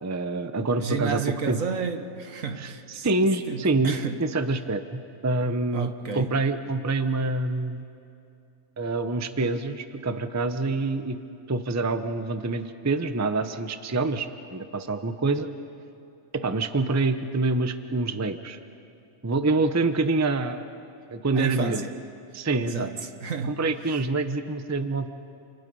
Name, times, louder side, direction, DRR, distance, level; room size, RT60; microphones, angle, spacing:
voice 1, 0.0-1.2 1.5-1.6 2.6-7.8 8.8-11.2 11.5-15.5 16.3-18.6 19.2-20.6 21.1-21.8 22.3-22.9 23.5-25.1, right 3 dB, 15° right, 0.7 m, -26 dB
voice 2, 0.8-3.1 3.5-4.2 5.7-6.3 21.3-21.9 22.6-23.6, right 5 dB, 70° right, 1.7 m, -31 dB
29.0 x 28.5 x 5.5 m
omnidirectional pair, 1.5 m